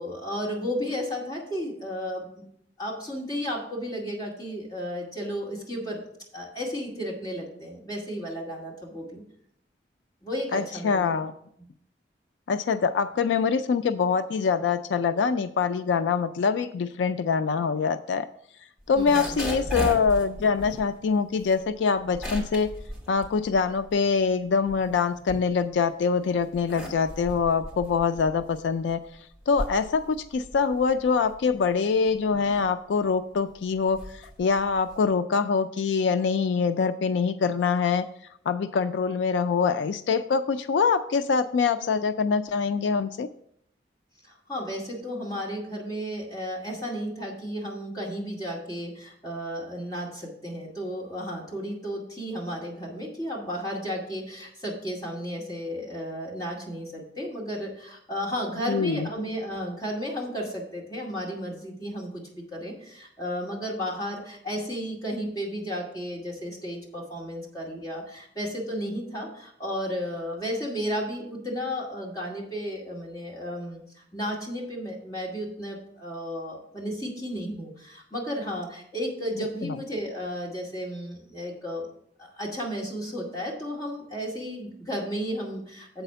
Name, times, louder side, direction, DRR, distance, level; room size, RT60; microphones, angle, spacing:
voice 1, 0.0-2.5 2.8-6.0 6.3-9.2 10.2-11.2 18.9-19.4 44.2-81.9 82.2-86.0, equal, 20° left, -3 dB, 2.2 m, -33 dB
voice 2, 10.5-11.3 12.5-18.3 18.9-22.7 23.1-29.0 29.5-38.0 38.5-43.3 58.7-59.1 79.6-79.8, left 5 dB, 85° left, 11 dB, 0.4 m, -24 dB
sound 1, 18.8-24.1 24.5-25.9 26.4-35.2, equal, 5° right, 2.6 m, -37 dB
8.0 x 4.2 x 6.7 m, 0.69 s
head